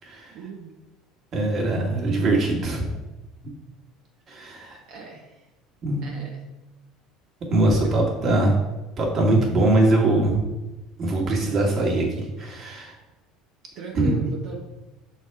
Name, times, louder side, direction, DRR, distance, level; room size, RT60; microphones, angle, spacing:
voice 1, 0.3-0.8 4.9-5.5 6.0-6.4 7.8-8.0 13.7-14.6, right 4 dB, 65° right, -1 dB, 1.0 m, -37 dB
voice 2, 1.3-2.9 4.3-4.8 5.8-6.1 7.5-8.5 9.0-10.4 11.0-12.9 13.9-14.2, right 2 dB, 40° right, -1 dB, 1.8 m, -22 dB
6.6 x 4.1 x 4.7 m, 1.0 s
cardioid pair, 130°, 0 cm